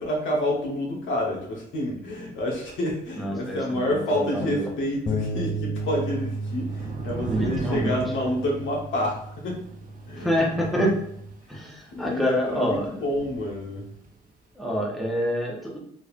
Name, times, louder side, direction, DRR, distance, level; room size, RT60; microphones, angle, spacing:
voice 1, 0.0-9.6 10.0-10.4 11.5-13.9, left 1 dB, 75° left, -2 dB, 1.2 m, -28 dB
voice 2, 3.2-4.7 7.2-8.0 10.2-10.9 11.5-13.0 14.6-15.8, equal, ahead, -3 dB, 1.0 m, -27 dB
sound 1, 5.1-11.3, right 1 dB, 30° left, 0.4 m, -34 dB
Thunder / Rain, 5.8-14.2, right 4 dB, 45° right, 0.8 m, -39 dB
3.8 x 3.0 x 2.5 m, 0.71 s
cardioid pair, 90°, 20 cm